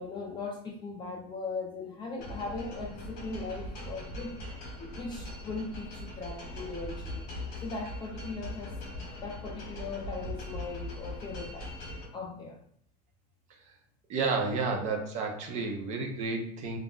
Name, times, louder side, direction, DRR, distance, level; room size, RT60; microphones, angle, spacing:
voice 1, 0.0-4.3 4.8-7.2 7.6-11.7 12.1-12.6, left 3 dB, 20° left, 0 dB, 0.3 m, -39 dB
sound 1, 2.2-12.1, left 1 dB, 60° left, 1.0 m, -41 dB
voice 2, 14.1-16.8, right 4 dB, 35° right, 2 dB, 0.6 m, -31 dB
2.4 x 2.1 x 3.6 m, 0.65 s
cardioid pair, 160°, 21 cm